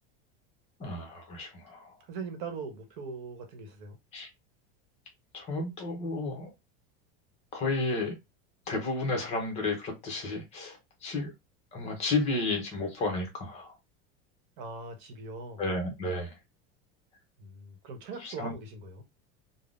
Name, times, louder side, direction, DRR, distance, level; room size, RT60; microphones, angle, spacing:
voice 1, 0.8-1.9 4.1-4.3 5.3-6.5 7.5-8.1 8.7-11.3 11.7-13.7 15.6-16.3 18.2-18.5, left 2 dB, 20° left, 0.7 m, -32 dB
voice 2, 2.1-4.0 14.6-15.7 17.4-19.0, right 4 dB, 60° right, 0.9 m, -41 dB
3.4 x 2.0 x 2.4 m
supercardioid pair, 180°, 30 cm